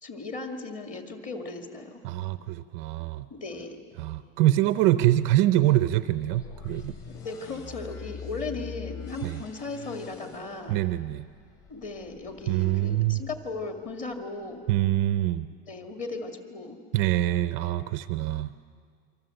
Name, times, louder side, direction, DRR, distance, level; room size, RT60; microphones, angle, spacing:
voice 1, 0.0-2.0 3.3-3.8 7.1-10.8 11.7-14.7 15.7-16.8, left 3 dB, 25° left, 4 dB, 2.3 m, -37 dB
voice 2, 2.0-3.3 4.0-7.0 9.2-9.4 10.7-11.3 12.5-13.2 14.7-15.5 16.9-18.6, right 14 dB, 40° right, 12 dB, 0.6 m, -25 dB
sound 1, 6.3-14.2, left 7 dB, 45° left, 4.7 m, -44 dB
28.0 x 25.0 x 7.9 m, 2.1 s
supercardioid pair, 170°, 31 cm